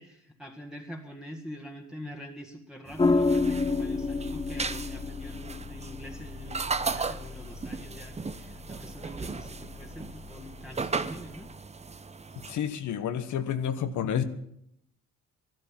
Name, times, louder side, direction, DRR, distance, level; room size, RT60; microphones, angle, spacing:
voice 1, 0.0-11.5, equal, ahead, -2 dB, 1.9 m, -45 dB
sound 1, 2.9-12.6, right 4 dB, 20° right, 0.8 m, -37 dB
sound 2, 3.0-11.5, left 3 dB, 15° left, 0.7 m, -32 dB
voice 2, 12.4-14.2, left 9 dB, 75° left, 10 dB, 1.3 m, -30 dB
13.5 x 12.0 x 7.4 m, 0.75 s
cardioid pair, 90°, 30 cm